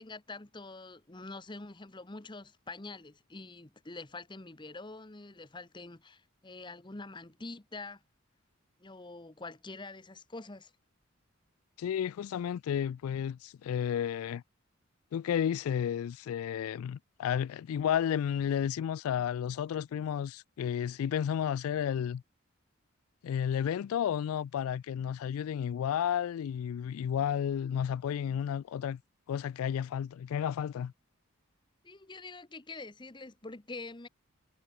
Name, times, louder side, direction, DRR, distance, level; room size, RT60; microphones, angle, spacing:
voice 1, 0.0-8.0 8.8-10.7 31.8-34.1, left 3 dB, 20° left, 0.9 m, -45 dB
voice 2, 11.8-14.4 15.1-22.2 23.2-29.0 29.3-30.9, left 9 dB, 80° left, 0.3 m, -32 dB
head